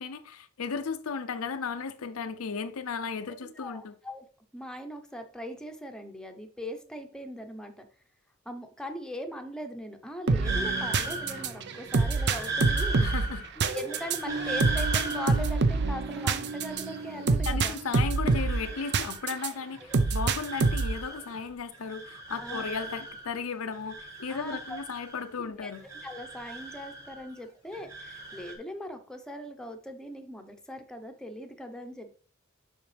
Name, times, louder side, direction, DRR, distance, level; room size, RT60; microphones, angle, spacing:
voice 1, 0.0-3.9 13.0-13.4 17.5-25.8, left 5 dB, 85° left, 0.6 m, -35 dB
voice 2, 3.3-4.2 4.5-7.9 8.4-13.0 13.6-17.8 19.8-20.1 22.4-22.7 24.3-24.8 25.4-25.7 26.0-32.1, equal, 5° left, 0.8 m, -40 dB
sound 1, 10.3-19.5 19.9-21.0, right 3 dB, 55° right, 0.6 m, -27 dB
sound 2, 10.4-17.4 17.7-19.4 19.7-21.5 21.7-23.4 23.7-25.4 25.7-27.4 27.7-28.5, right 2 dB, 15° right, 1.4 m, -38 dB
7.2 x 5.7 x 3.4 m
head